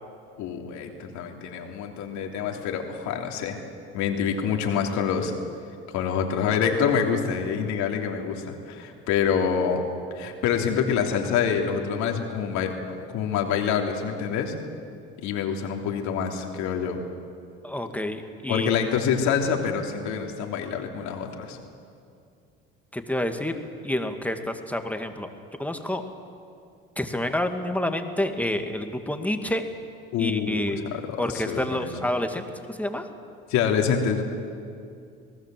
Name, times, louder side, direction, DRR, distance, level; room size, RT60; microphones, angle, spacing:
voice 1, 0.4-3.6 3.9-5.3 5.9-9.8 10.1-12.7 13.1-14.5 15.2-17.0 18.5-21.6 30.1-31.9 33.5-34.2, left 7 dB, 70° left, 3 dB, 3.2 m, -26 dB
voice 2, 17.6-18.7 22.9-23.5 23.8-25.3 25.6-26.0 27.0-29.6 30.2-30.8 31.2-33.1, left 1 dB, 5° left, 5 dB, 2.3 m, -28 dB
26.5 x 18.5 x 7.8 m, 2.4 s
supercardioid pair, 80°, 29 cm